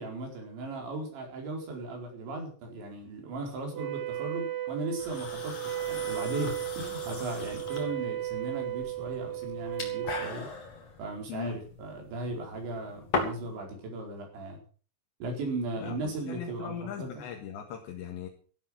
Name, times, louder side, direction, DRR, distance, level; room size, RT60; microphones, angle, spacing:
voice 1, 0.0-10.5 11.0-14.6 15.2-17.2, right 2 dB, 85° right, 1 dB, 7.0 m, -37 dB
Wind instrument woodwind instrument, 3.7-10.4, right 14 dB, 60° right, 1.9 m, -35 dB
sound 1, 5.0-13.6, left 4 dB, 40° left, 4.0 m, -39 dB
voice 2, 11.3-11.6 15.8-18.3, left 9 dB, 80° left, 2 dB, 4.0 m, -39 dB
14.5 x 12.0 x 6.2 m, 0.41 s
omnidirectional pair, 5.1 m